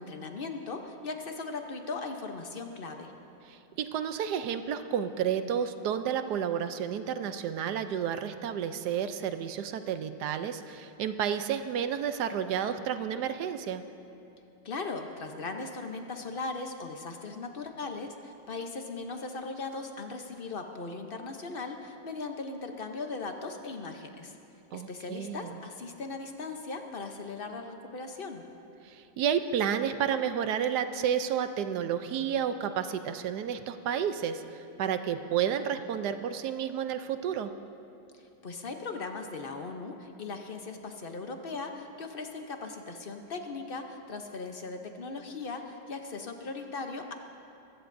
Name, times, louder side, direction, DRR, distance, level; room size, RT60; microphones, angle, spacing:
voice 1, 0.0-3.1 14.6-24.4 24.7-28.4 38.1-47.1, left 3 dB, 50° left, 4 dB, 0.6 m, -38 dB
voice 2, 3.5-13.8 24.7-25.6 28.8-37.5, right 8 dB, 70° right, 9 dB, 1.1 m, -31 dB
22.5 x 16.0 x 2.6 m, 2.9 s
omnidirectional pair, 2.0 m